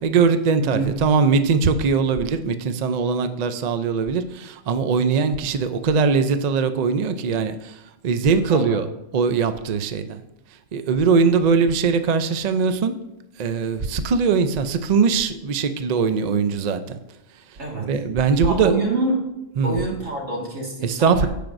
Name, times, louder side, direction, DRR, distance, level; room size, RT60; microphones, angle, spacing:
voice 1, 0.0-8.9 9.1-10.2 10.7-12.9 13.4-17.0 17.5-18.7 19.6-19.8 20.8-21.3, right 5 dB, 55° right, 9 dB, 0.5 m, -21 dB
voice 2, 8.5-8.8 17.6-17.9 18.3-19.3 19.6-21.3, right 2 dB, 80° right, -2 dB, 2.3 m, -26 dB
15.0 x 5.1 x 2.6 m, 0.97 s
omnidirectional pair, 1.3 m